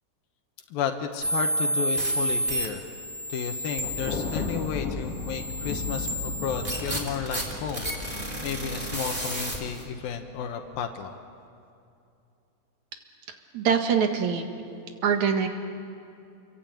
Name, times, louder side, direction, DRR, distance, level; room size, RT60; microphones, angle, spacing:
voice 1, 0.7-2.9 3.3-11.1, left 7 dB, 80° left, 5 dB, 3.0 m, -33 dB
sound 1, 1.2-9.8, right 1 dB, 10° right, 3.4 m, -31 dB
Thunder, 3.8-9.2, left 4 dB, 45° left, 3.0 m, -35 dB
voice 2, 13.5-14.5 15.0-15.5, right 7 dB, 60° right, 5 dB, 2.9 m, -23 dB
28.5 x 23.5 x 9.0 m, 2.6 s
omnidirectional pair, 4.2 m